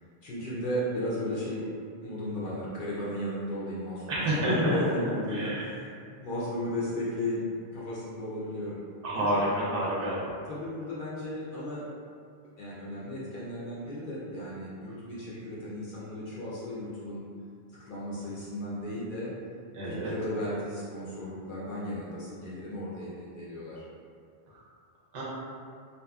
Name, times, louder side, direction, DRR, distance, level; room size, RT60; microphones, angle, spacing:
voice 1, 0.2-1.6 2.0-5.9 6.2-7.5 7.7-8.8 9.1-9.4 10.5-11.8 12.6-17.2 17.9-19.3 19.8-23.8, left 1 dB, 60° left, -8 dB, 0.6 m, -34 dB
voice 2, 4.1-4.7 5.3-5.7 9.0-10.2 19.7-20.1 24.5-24.6 25.1-25.2, right 1 dB, 60° right, -7 dB, 0.7 m, -29 dB
2.8 x 2.2 x 2.2 m, 2.3 s
omnidirectional pair, 1.1 m